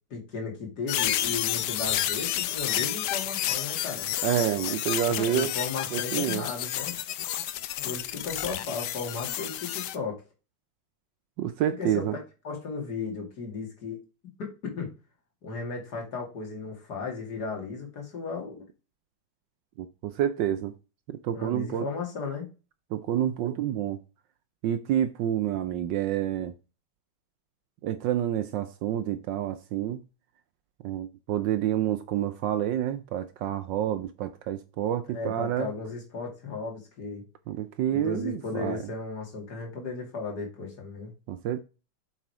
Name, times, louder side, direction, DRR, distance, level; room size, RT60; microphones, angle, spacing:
voice 1, 0.1-4.1 5.2-7.0 7.8-10.2 11.8-12.1 12.4-14.0 14.4-14.9 15.4-18.6 21.3-22.5 35.1-37.2 37.9-41.1, left 4 dB, 50° left, 2.8 m, -35 dB
sound 1, 0.9-10.0, left 12 dB, 75° left, 1.0 m, -30 dB
voice 2, 4.2-5.5 5.9-6.5 11.4-12.2 19.8-20.7 21.1-21.9 22.9-24.0 24.6-26.5 27.8-30.0 30.8-35.7 37.5-38.8 41.3-41.6, right 11 dB, 70° right, 1.1 m, -28 dB
7.6 x 5.0 x 4.7 m
omnidirectional pair, 2.3 m